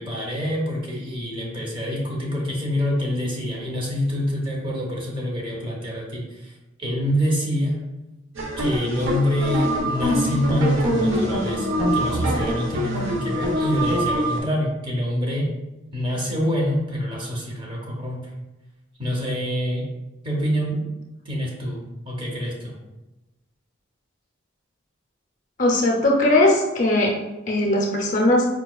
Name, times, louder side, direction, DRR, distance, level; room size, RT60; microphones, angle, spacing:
voice 1, 0.0-6.5 6.8-7.8 8.6-11.7 11.9-15.5 15.9-18.3 19.0-19.8 20.2-20.9 21.2-22.7, equal, 25° right, -3 dB, 0.6 m, -26 dB
sound 1, 8.4-14.4, equal, 75° right, 0.6 m, -23 dB
voice 2, 25.6-27.1 27.5-28.5, left 1 dB, 40° left, -1 dB, 0.5 m, -19 dB
4.5 x 2.2 x 2.3 m, 1.0 s
head